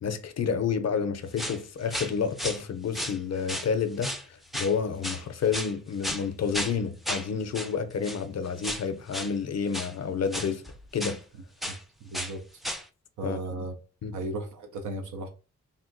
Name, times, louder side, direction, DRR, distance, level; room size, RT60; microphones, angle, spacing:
voice 1, 0.0-10.6 10.9-11.2 13.2-13.4 14.0-14.1, left 6 dB, 60° left, 0.5 m, -29 dB
sound 1, 1.4-1.6 1.9-2.6 2.9-3.7 4.0-4.2 4.5-4.8 5.0-5.7 6.0-6.3 6.5-6.8 7.1-7.3 7.5-7.7 8.0-8.2 8.6-8.9 9.1-9.3 9.7-9.9 10.3-11.2 11.6-11.8 12.1-12.3 12.6-12.8, equal, ahead, 0.4 m, -34 dB
voice 2, 12.0-12.4 13.2-13.7 14.1-15.3, right 2 dB, 85° right, 0.5 m, -35 dB
3.5 x 2.2 x 2.5 m
cardioid pair, 60°, 30 cm